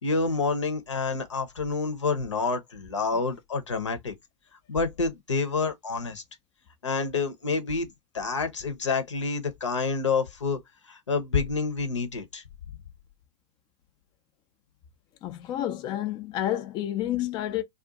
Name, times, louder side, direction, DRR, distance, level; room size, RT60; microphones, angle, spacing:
voice 1, 0.0-4.1 4.7-6.2 6.8-10.6 10.9-12.4, left 4 dB, 75° left, 0.8 m, -28 dB
voice 2, 15.2-17.6, left 12 dB, 25° left, 0.4 m, -29 dB
2.5 x 2.4 x 3.7 m
figure-of-eight pair, 100°, 15 cm